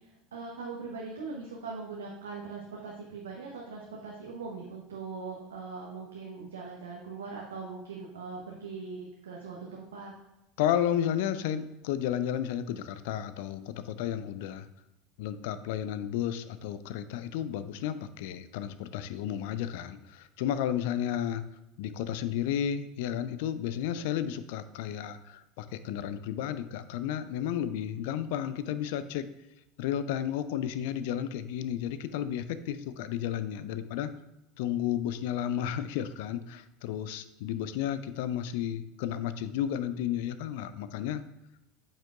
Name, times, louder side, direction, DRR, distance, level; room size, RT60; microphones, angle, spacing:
voice 1, 0.3-10.1, right 4 dB, 80° right, -2 dB, 0.9 m, -41 dB
voice 2, 10.6-14.7 15.2-21.4 21.8-29.3 29.8-34.1 34.6-41.2, left 10 dB, 65° left, 13 dB, 0.4 m, -32 dB
8.7 x 5.4 x 2.4 m, 0.96 s
figure-of-eight pair, 75°, 0 cm